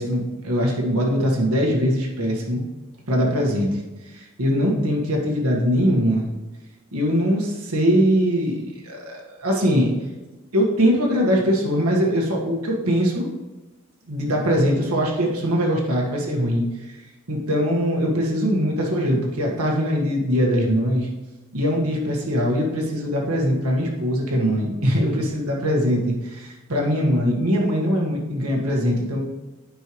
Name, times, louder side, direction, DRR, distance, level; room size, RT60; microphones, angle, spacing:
voice 1, 0.0-2.6 3.1-3.7 4.1-6.3 6.9-9.9 10.5-13.3 14.1-16.6 17.3-21.1 21.5-26.0 26.3-29.2, equal, 85° right, -1 dB, 1.6 m, -21 dB
9.2 x 5.6 x 3.1 m, 1.1 s
head